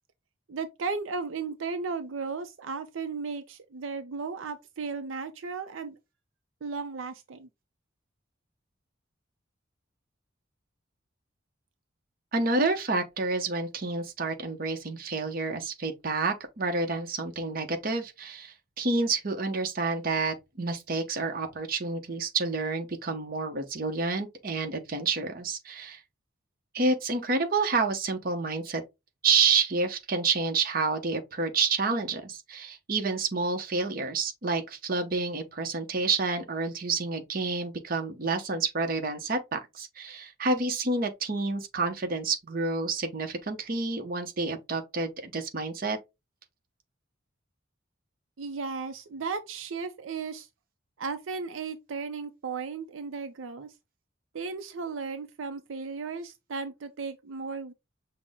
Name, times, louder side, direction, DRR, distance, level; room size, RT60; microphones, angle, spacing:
voice 1, 0.5-6.0 6.6-7.5 48.4-50.5 51.0-53.7 54.3-57.7, right 4 dB, 80° right, 0.5 m, -35 dB
voice 2, 12.3-26.0 26.7-28.8 29.2-46.0, right 3 dB, 45° right, 0.8 m, -29 dB
5.8 x 2.1 x 3.5 m
head